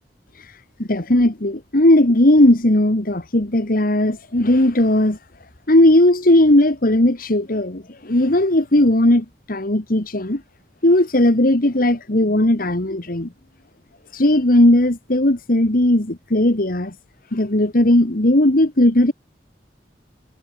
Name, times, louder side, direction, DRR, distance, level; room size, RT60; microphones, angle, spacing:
voice 1, 0.4-5.2 5.7-10.4 10.8-13.3 14.1-16.9 17.3-19.1, left 1 dB, 55° left, 2.1 m, -17 dB
head